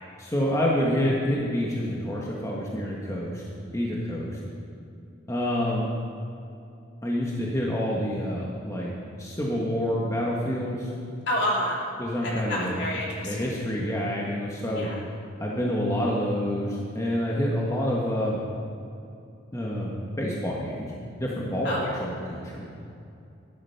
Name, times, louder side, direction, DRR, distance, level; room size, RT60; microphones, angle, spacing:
voice 1, 0.2-3.4 3.7-4.4 5.3-5.9 7.0-8.9 9.2-10.9 12.0-12.8 13.2-14.9 15.4-18.4 19.5-19.9 20.2-20.9 21.2-22.7, equal, 15° left, -4 dB, 1.4 m, -27 dB
voice 2, 11.3-11.8 12.2-13.5 14.7-15.0 21.6-22.0, equal, 60° left, -4 dB, 3.1 m, -28 dB
11.5 x 9.8 x 5.8 m, 2.6 s
head